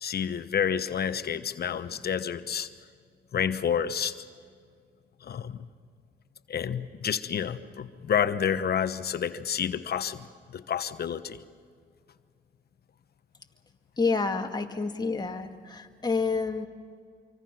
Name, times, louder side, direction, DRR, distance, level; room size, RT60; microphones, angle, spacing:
voice 1, 0.0-2.7 3.3-4.1 5.2-5.7 6.5-10.3 10.5-11.4, left 8 dB, 55° left, 11 dB, 1.1 m, -29 dB
voice 2, 14.0-16.7, left 4 dB, 20° left, 4 dB, 2.0 m, -28 dB
26.0 x 24.5 x 6.1 m, 2.1 s
cardioid pair, 90°, 20 cm